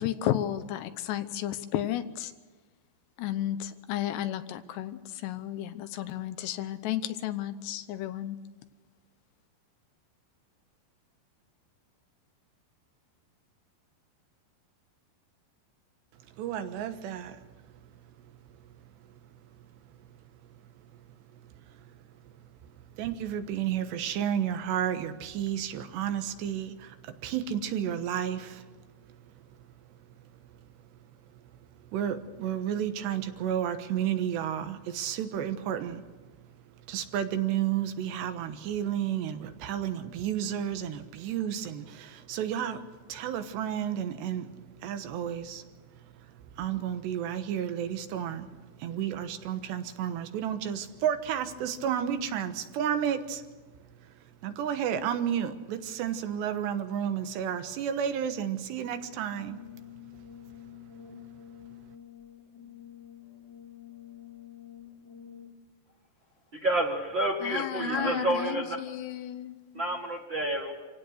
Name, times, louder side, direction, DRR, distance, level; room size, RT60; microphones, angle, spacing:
voice 1, 0.0-2.3 3.2-8.4 67.4-69.6, left 12 dB, 85° left, 11 dB, 3.1 m, -33 dB
voice 2, 16.3-17.5 17.8-17.9 19.6-19.7 20.9-21.0 21.4-28.8 29.1-29.3 30.1-30.2 30.6-30.7 31.3-31.4 31.7-36.1 36.5-48.5 48.8-53.5 54.0-59.6, right 9 dB, 85° right, 9 dB, 3.5 m, -32 dB
Brass instrument, 59.3-65.7, left 10 dB, 45° left, 2.6 m, -48 dB
voice 3, 66.6-68.8 69.7-70.7, right 1 dB, 40° right, 0 dB, 1.7 m, -28 dB
26.5 x 17.0 x 6.5 m, 1.3 s
omnidirectional pair, 4.8 m